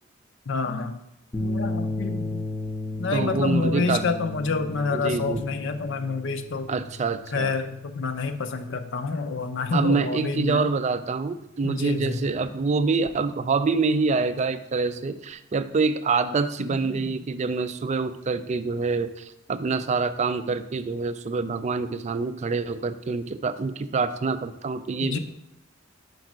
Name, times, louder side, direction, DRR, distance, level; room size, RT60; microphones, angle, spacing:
voice 1, 0.5-1.0 1.4-2.4 3.0-6.7 7.3-10.7 11.6-12.2 16.6-17.1 25.0-25.2, left 4 dB, 60° left, 7 dB, 0.5 m, -28 dB
sound 1, 1.3-9.8, left 2 dB, 15° left, 0.6 m, -34 dB
voice 2, 3.1-4.0 4.9-5.4 6.7-7.5 9.7-25.2, right 4 dB, 35° right, 12 dB, 0.3 m, -26 dB
5.3 x 5.1 x 6.0 m, 0.86 s
head